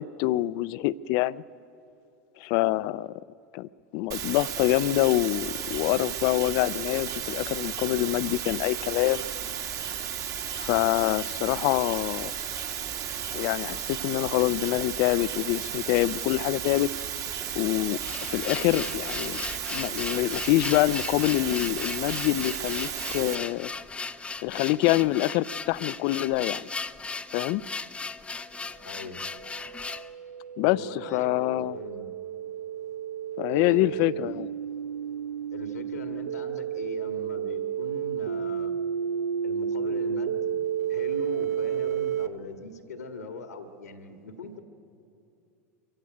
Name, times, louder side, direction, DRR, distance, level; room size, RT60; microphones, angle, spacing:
voice 1, 0.0-1.4 2.4-3.1 3.5-9.3 10.5-12.3 13.3-16.9 17.6-19.4 19.7-23.7 24.4-26.7 27.3-27.6 30.6-31.8 33.4-34.5, left 17 dB, 55° left, 21 dB, 0.5 m, -26 dB
sound 1, 4.1-23.4, right 8 dB, 40° right, 2.0 m, -34 dB
sound 2, 17.9-30.1, left 4 dB, 15° left, 0.7 m, -37 dB
voice 2, 28.8-29.3 30.6-32.1 33.5-34.5 35.5-38.8 39.4-44.6, left 3 dB, 85° left, 6 dB, 1.8 m, -41 dB
sound 3, 29.0-42.3, right 8 dB, 80° right, 0.7 m, -32 dB
23.5 x 15.5 x 9.2 m, 2.6 s
hypercardioid pair, 90°, 8 cm